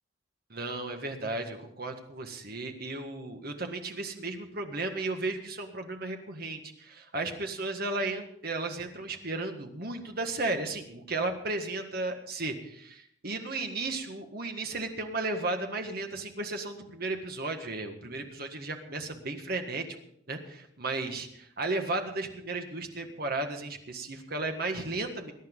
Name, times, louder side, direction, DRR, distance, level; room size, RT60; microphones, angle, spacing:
voice 1, 0.5-19.9 20.3-25.3, right 2 dB, 55° right, 4 dB, 1.7 m, -34 dB
21.0 x 10.5 x 3.9 m, 0.72 s
head